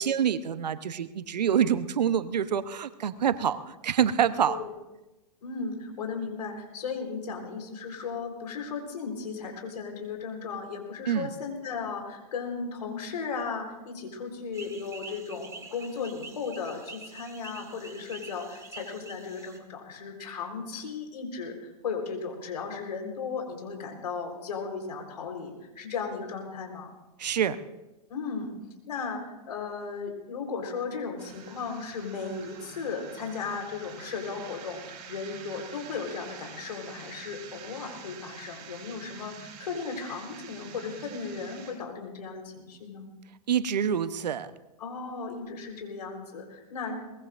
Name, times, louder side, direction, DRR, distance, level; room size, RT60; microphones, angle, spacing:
voice 1, 0.0-4.6 11.1-11.3 27.2-27.6 43.5-44.5, right 8 dB, 75° right, 12 dB, 1.0 m, -26 dB
voice 2, 5.4-26.9 28.1-28.5 28.9-43.1 44.8-47.0, left 5 dB, 75° left, 3 dB, 4.2 m, -36 dB
sound 1, 14.5-19.6, right 4 dB, 15° right, 1.8 m, -46 dB
sound 2, 31.2-41.7, right 7 dB, 45° right, 7.3 m, -47 dB
23.0 x 20.0 x 2.6 m, 1.0 s
hypercardioid pair, 115°, 21 cm